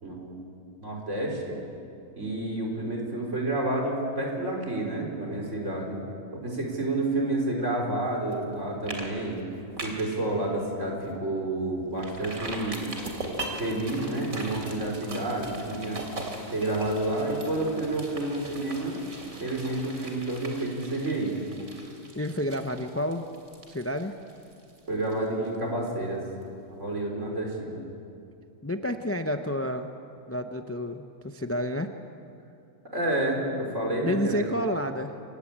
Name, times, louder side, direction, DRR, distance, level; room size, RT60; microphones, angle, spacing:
voice 1, 0.0-0.5 0.8-1.5 2.2-6.0 6.3-9.4 9.8-12.9 13.6-16.1 16.5-18.9 19.4-21.4 24.9-26.2 26.7-27.8 32.9-34.5, right 2 dB, 60° right, 0 dB, 4.6 m, -29 dB
sound 1, 8.3-8.5 8.9-9.1 9.4-10.2 10.6-10.7 11.1-11.2 12.0-25.6 25.9-26.0, right 2 dB, 85° right, 3.6 m, -40 dB
voice 2, 22.1-23.2 23.7-24.1 28.6-29.9 30.3-31.9 34.0-35.1, left 1 dB, 15° left, 6 dB, 0.6 m, -30 dB
27.0 x 16.5 x 8.8 m, 2.6 s
omnidirectional pair, 1.4 m